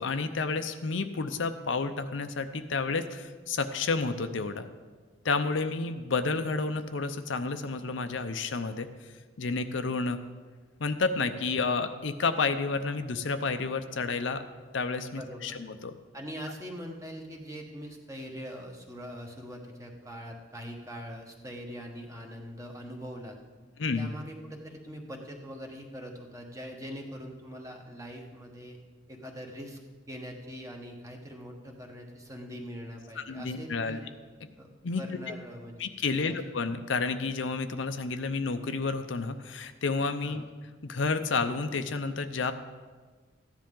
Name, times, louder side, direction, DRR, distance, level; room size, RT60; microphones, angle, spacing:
voice 1, 0.0-4.7 5.2-8.9 9.4-10.2 10.8-14.4 14.7-15.9 23.8-24.1 33.2-34.0 34.8-35.0 35.8-40.4 40.8-42.5, left 4 dB, 70° left, 8 dB, 0.6 m, -30 dB
voice 2, 15.2-15.6 16.1-23.4 23.9-28.8 29.1-29.8 30.1-34.0 34.6-34.7 35.0-36.4 40.2-40.5, equal, 15° right, 1 dB, 1.2 m, -42 dB
14.0 x 10.0 x 3.8 m, 1.4 s
head